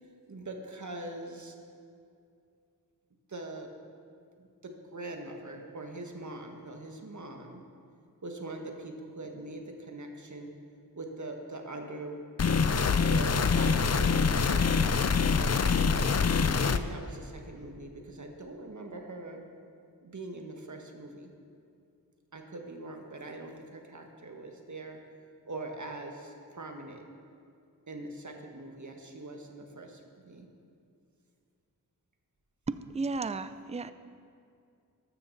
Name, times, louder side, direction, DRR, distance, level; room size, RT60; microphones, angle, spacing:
voice 1, 0.3-1.5 3.3-3.7 4.4-7.6 8.2-10.5 10.9-12.2 13.0-14.9 16.3-19.4 20.0-21.3 22.3-25.0 25.4-27.0 27.9-30.5, right 2 dB, 50° right, 3 dB, 1.5 m, -42 dB
sound 1, 12.4-16.8, left 5 dB, 45° left, 0.6 m, -25 dB
voice 2, 32.7-33.9, right 3 dB, 20° right, 13 dB, 0.4 m, -34 dB
13.5 x 12.5 x 4.1 m, 2.4 s
wide cardioid pair, 65°, 37 cm